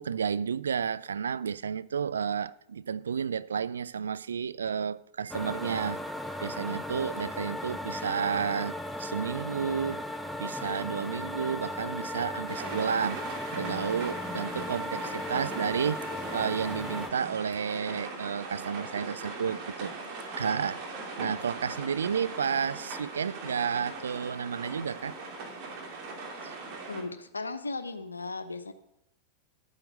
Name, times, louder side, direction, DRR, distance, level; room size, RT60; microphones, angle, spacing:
voice 1, 0.0-6.0 6.4-10.0 10.4-13.2 13.5-16.0 16.3-19.9 20.4-20.9 21.2-25.2 26.4-26.5, right 7 dB, 70° right, 0.4 m, -31 dB
sound 1, 5.3-17.1, left 1 dB, 5° left, 0.9 m, -36 dB
sound 2, 12.5-27.0, right 3 dB, 45° right, 2.9 m, -40 dB
voice 2, 26.9-28.7, left 3 dB, 80° left, 0.9 m, -36 dB
12.0 x 8.8 x 6.3 m
figure-of-eight pair, 90°, 0 cm